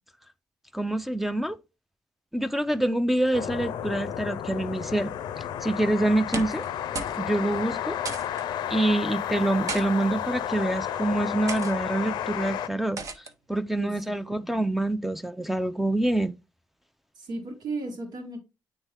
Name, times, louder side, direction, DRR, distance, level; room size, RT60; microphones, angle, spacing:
voice 1, 0.7-1.6 2.3-5.1 5.6-6.6 7.2-8.0 8.7-13.0 13.5-16.3, right 1 dB, 5° right, 0.5 m, -26 dB
sound 1, 3.3-12.7, left 10 dB, 85° left, 0.5 m, -32 dB
sound 2, 6.2-6.7 6.9-7.2 7.5-7.6 8.1-8.4 9.4-9.9 10.6-10.9 11.5-11.7 13.0-13.3, right 4 dB, 50° right, 0.9 m, -35 dB
voice 2, 17.2-18.4, right 3 dB, 75° right, 2.2 m, -35 dB
8.7 x 3.6 x 3.3 m
cardioid pair, 80°, 7 cm